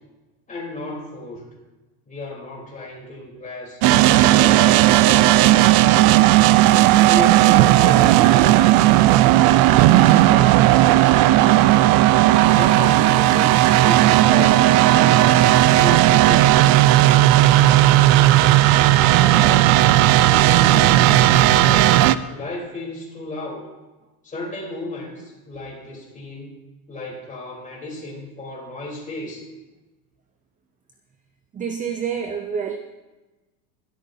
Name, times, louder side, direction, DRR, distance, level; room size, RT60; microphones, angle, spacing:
voice 1, 0.5-1.4 2.1-3.8 4.2-6.2 7.0-9.4 9.9-11.7 12.5-15.3 15.7-16.9 17.5-19.8 20.2-22.0 22.3-23.7 24.2-26.6 26.9-29.4, left 2 dB, 15° left, -3 dB, 3.6 m, -34 dB
sound 1, 3.8-22.2, right 15 dB, 60° right, 0.6 m, -14 dB
voice 2, 31.5-32.8, right 7 dB, 20° right, 6 dB, 0.5 m, -27 dB
22.0 x 13.0 x 2.7 m, 1.2 s
supercardioid pair, 150°, 46 cm